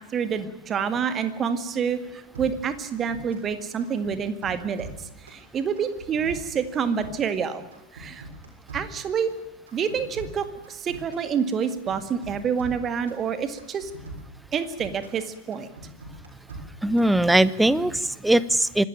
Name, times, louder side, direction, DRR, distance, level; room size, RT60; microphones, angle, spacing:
voice 1, 0.1-4.9 5.3-7.6 7.9-8.2 8.7-9.3 9.7-13.9 14.5-15.7, right 7 dB, 25° right, 11 dB, 2.0 m, -27 dB
sound 1, 2.3-3.5 3.8-5.4 5.8-7.4 7.7-9.3 9.7-11.3 11.6-13.2 13.6-15.2 15.5-17.1 17.5-17.9, right 2 dB, 65° right, 7.0 m, -42 dB
voice 2, 16.8-18.8, right 1 dB, 5° right, 19 dB, 0.8 m, -20 dB
25.0 x 13.5 x 8.9 m, 1.0 s
figure-of-eight pair, 90°, 0 cm